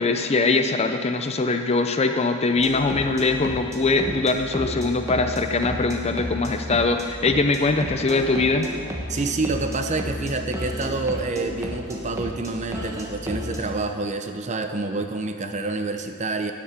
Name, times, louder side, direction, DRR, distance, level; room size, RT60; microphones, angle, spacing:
voice 1, 0.0-8.7, left 3 dB, 30° left, 6 dB, 0.5 m, -22 dB
sound 1, 2.5-13.8, equal, 15° right, 1.2 m, -33 dB
voice 2, 9.1-16.5, right 3 dB, 30° right, 7 dB, 0.7 m, -27 dB
9.8 x 8.4 x 7.4 m, 2.3 s
head